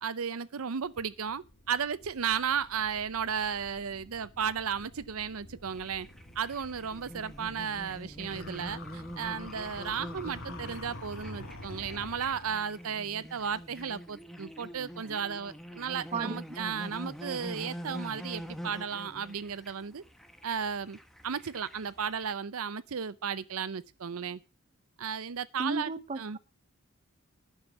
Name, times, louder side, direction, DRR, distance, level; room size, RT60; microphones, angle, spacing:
voice 1, 0.0-6.1 6.4-20.0 20.4-21.0 21.2-24.4 25.0-25.9 26.2-26.4, right 7 dB, 75° right, 0.6 m, -34 dB
sound 1, 0.8-12.4, equal, 45° left, 2.3 m, -54 dB
sound 2, 5.7-22.3, equal, ahead, 1.1 m, -45 dB
sound 3, 8.3-12.6, left 2 dB, 65° left, 2.6 m, -45 dB
voice 2, 25.6-26.4, right 3 dB, 30° right, 0.7 m, -34 dB
10.5 x 7.1 x 6.9 m
head